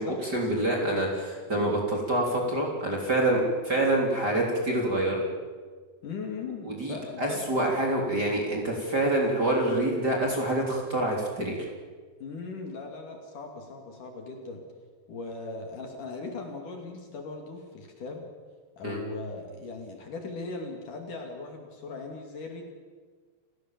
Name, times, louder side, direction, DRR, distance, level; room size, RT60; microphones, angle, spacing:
voice 1, 0.0-5.2 6.6-11.6 18.8-19.0, right 1 dB, 25° right, -1 dB, 3.6 m, -26 dB
voice 2, 1.5-1.8 6.0-7.5 12.2-14.6 15.1-18.2 18.8-22.6, left 3 dB, 50° left, 3 dB, 3.7 m, -39 dB
29.5 x 17.0 x 7.5 m, 1.5 s
omnidirectional pair, 4.9 m